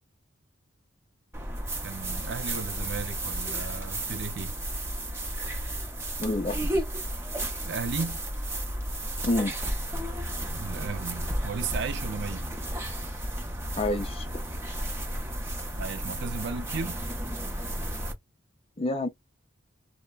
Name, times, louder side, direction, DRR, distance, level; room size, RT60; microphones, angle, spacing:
sound 1, 1.3-18.1, right 1 dB, 15° right, 0.7 m, -33 dB
voice 1, 1.8-4.6 7.6-8.2 10.5-12.5 15.8-17.0, right 5 dB, 60° right, 0.4 m, -35 dB
voice 2, 6.2-6.7 9.2-9.5 13.8-14.3 18.8-19.1, left 1 dB, 30° left, 0.5 m, -28 dB
3.3 x 2.1 x 2.3 m
head